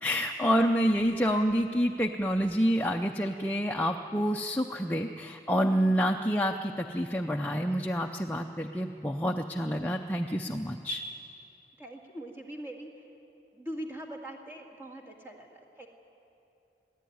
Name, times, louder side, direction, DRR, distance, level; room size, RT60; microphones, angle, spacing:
voice 1, 0.0-11.0, equal, 10° left, 2 dB, 0.5 m, -28 dB
voice 2, 11.8-13.1 13.5-15.9, right 1 dB, 15° right, 0 dB, 2.0 m, -42 dB
22.0 x 15.0 x 9.4 m, 2.8 s
head